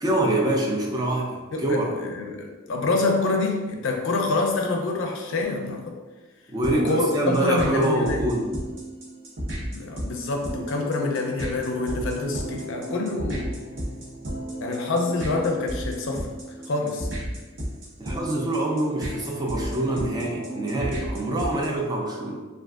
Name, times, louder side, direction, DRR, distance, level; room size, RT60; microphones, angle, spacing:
voice 1, 0.0-1.9 6.5-8.5 18.0-22.5, right 1 dB, 20° right, -2 dB, 0.4 m, -25 dB
voice 2, 1.5-5.9 6.8-8.2 9.7-13.5 14.6-16.3 16.7-17.1, left 3 dB, 65° left, 1 dB, 0.5 m, -26 dB
sound 1, 6.6-21.9, right 1 dB, 55° right, 0.8 m, -33 dB
3.5 x 2.4 x 2.3 m, 1.2 s
head